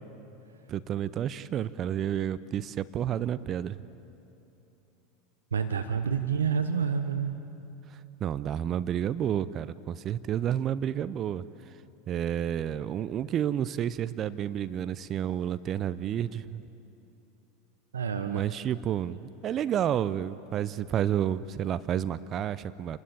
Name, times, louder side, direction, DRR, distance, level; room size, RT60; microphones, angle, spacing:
voice 1, 0.7-3.8 7.9-11.8 12.1-16.6 18.3-23.0, right 10 dB, 40° right, 16 dB, 0.6 m, -30 dB
voice 2, 5.5-7.3 17.9-18.4, right 6 dB, 90° right, 8 dB, 0.8 m, -28 dB
27.5 x 12.5 x 8.7 m, 2.9 s
hypercardioid pair, 90°, 0 cm